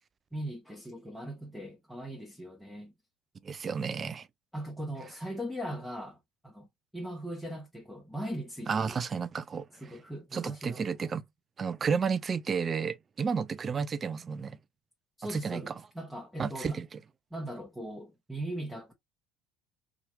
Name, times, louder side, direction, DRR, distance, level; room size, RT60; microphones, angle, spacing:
voice 1, 0.3-2.9 4.5-6.2 6.4-6.7 6.9-9.0 9.8-10.9 15.2-16.8 17.3-18.9, right 1 dB, ahead, 0.9 m, -39 dB
voice 2, 3.4-4.3 8.7-9.6 10.3-11.2 11.6-14.6 15.2-15.7 16.4-17.0, right 6 dB, 35° right, 0.4 m, -32 dB
2.8 x 2.4 x 2.9 m
hypercardioid pair, 75°, 0 cm